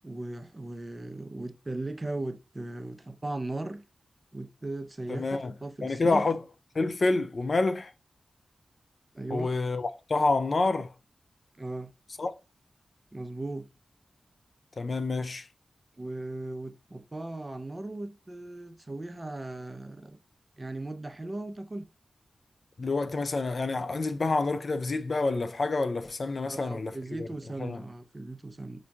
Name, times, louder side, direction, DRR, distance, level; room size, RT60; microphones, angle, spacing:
voice 1, 0.0-3.8 4.3-6.2 9.1-9.6 11.6-11.9 13.1-13.7 16.0-20.2 20.6-21.8 26.5-28.8, right 2 dB, 30° right, 0.5 m, -37 dB
voice 2, 5.1-5.5 5.8-6.4 6.7-7.9 9.3-10.9 12.2-12.3 14.8-15.5 22.8-27.3 27.6-27.8, left 3 dB, 55° left, 0.3 m, -28 dB
4.3 x 2.6 x 2.3 m
cardioid pair, 55°, 0 cm